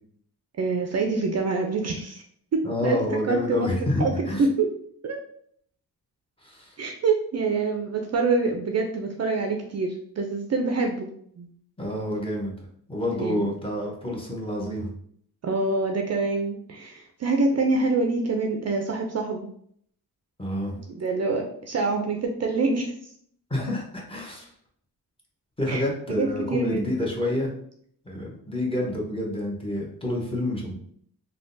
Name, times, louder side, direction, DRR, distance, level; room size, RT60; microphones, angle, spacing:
voice 1, 0.6-2.2 2.5-3.7 4.0-4.7 5.0-5.2 6.8-11.1 11.4-11.5 13.2-13.5 15.4-19.5 20.9-23.1 25.7-25.8 26.1-26.9, right 3 dB, 45° right, 3 dB, 0.4 m, -26 dB
voice 2, 2.6-4.4 6.4-6.8 11.8-12.5 12.9-14.9 20.4-20.8 23.5-24.5 25.6-27.5 28.0-30.7, left 1 dB, 15° left, -2 dB, 0.9 m, -28 dB
3.5 x 2.3 x 2.6 m, 0.64 s
cardioid pair, 95°, 38 cm